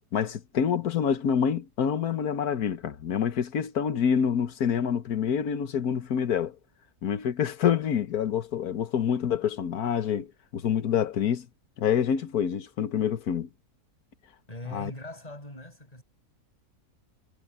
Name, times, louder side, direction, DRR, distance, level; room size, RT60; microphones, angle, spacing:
voice 1, 0.1-6.6 7.0-10.3 10.5-11.5 11.8-13.5 14.7-14.9, left 8 dB, 80° left, 1.6 m, -27 dB
voice 2, 14.5-16.0, left 1 dB, 25° left, 6.9 m, -41 dB
omnidirectional pair, 1.6 m